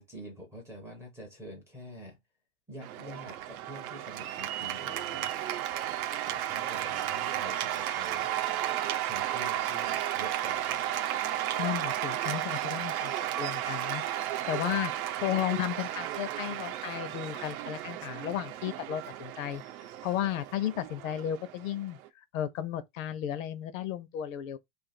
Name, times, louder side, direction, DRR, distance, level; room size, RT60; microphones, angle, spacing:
voice 1, 0.0-2.2 2.7-5.3 6.3-8.3 9.0-11.0, equal, 5° right, 0.5 m, -47 dB
Cheering / Applause, 2.8-22.1, right 12 dB, 90° right, 0.7 m, -33 dB
voice 2, 11.6-14.0 14.5-19.6 20.0-22.0 22.3-24.6, left 11 dB, 70° left, 0.7 m, -34 dB
2.7 x 2.5 x 4.0 m
supercardioid pair, 160°, 42 cm